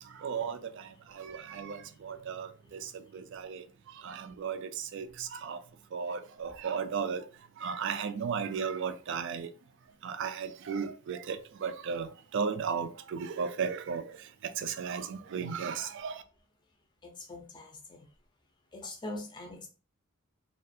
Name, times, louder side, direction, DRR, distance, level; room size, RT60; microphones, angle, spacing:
voice 1, 0.0-5.6 5.9-7.3 7.6-9.5 10.0-16.2, right 6 dB, 55° right, 0.3 m, -35 dB
voice 2, 17.0-18.1 18.7-19.7, left 2 dB, 20° left, 0.5 m, -42 dB
2.4 x 2.3 x 2.6 m
head